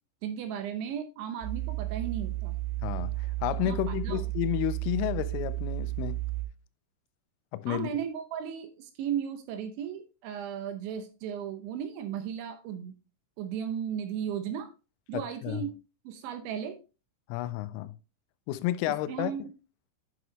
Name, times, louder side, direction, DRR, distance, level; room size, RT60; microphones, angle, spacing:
voice 1, 0.2-2.5 3.6-4.3 7.7-13.0 13.4-14.7 15.1-15.7 16.1-16.8 18.9-19.5, right 8 dB, 75° right, 2.9 m, -35 dB
sound 1, 1.4-6.4, right 18 dB, 55° right, 2.6 m, -33 dB
voice 2, 2.8-6.2 7.5-7.9 15.1-15.6 17.3-17.9 18.5-19.3, left 14 dB, 85° left, 3.1 m, -31 dB
9.3 x 6.1 x 2.9 m
omnidirectional pair, 5.9 m